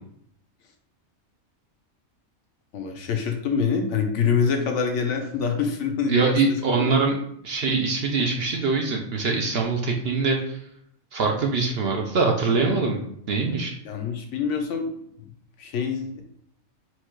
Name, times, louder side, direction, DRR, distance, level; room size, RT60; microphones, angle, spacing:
voice 1, 2.7-6.4 6.8-6.9 13.8-14.9 15.6-16.2, left 6 dB, 65° left, 4 dB, 0.9 m, -25 dB
voice 2, 6.1-7.2 7.4-10.6 11.1-13.0 13.3-13.7, right 4 dB, 60° right, 1 dB, 0.7 m, -23 dB
4.4 x 2.4 x 4.4 m, 0.71 s
omnidirectional pair, 1.4 m